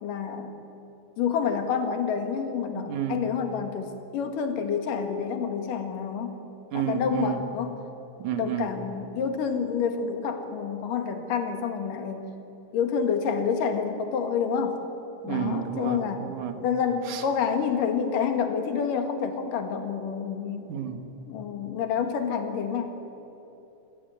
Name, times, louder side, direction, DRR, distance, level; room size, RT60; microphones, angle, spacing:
voice 1, 0.0-0.5 1.2-3.9 4.1-6.4 6.7-7.8 8.4-12.2 12.7-14.8 15.2-16.2 16.6-20.7 21.3-23.0, left 6 dB, 85° left, 6 dB, 3.5 m, -28 dB
voice 2, 2.8-3.3 6.7-7.4 8.2-8.8 15.2-16.6 17.1-17.2 20.7-21.0, right 9 dB, 70° right, 7 dB, 2.8 m, -31 dB
27.5 x 16.0 x 9.2 m, 3.0 s
omnidirectional pair, 3.7 m